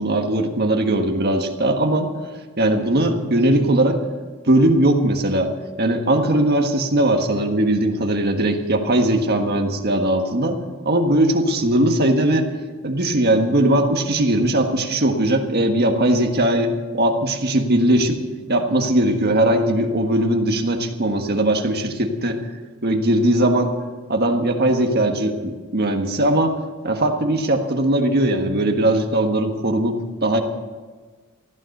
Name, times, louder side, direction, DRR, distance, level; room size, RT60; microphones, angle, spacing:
voice 1, 0.0-2.1 2.6-4.0 4.4-5.5 5.8-10.6 10.8-12.5 12.8-18.2 18.5-22.4 22.8-23.7 24.1-26.5 26.8-30.4, right 1 dB, 45° right, 4 dB, 1.5 m, -19 dB
15.0 x 12.5 x 6.6 m, 1.4 s
head